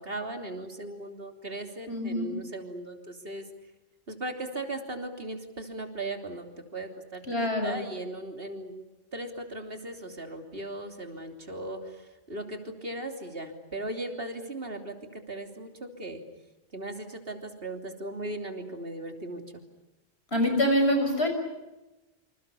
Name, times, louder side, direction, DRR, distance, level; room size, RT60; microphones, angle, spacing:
voice 1, 0.0-3.5 4.1-8.7 9.1-16.2 16.7-19.6, right 1 dB, 60° right, 4 dB, 3.4 m, -38 dB
voice 2, 1.9-2.3 7.3-7.8 20.3-21.3, equal, 70° left, 5 dB, 6.7 m, -25 dB
27.5 x 27.0 x 7.0 m, 1.0 s
omnidirectional pair, 1.1 m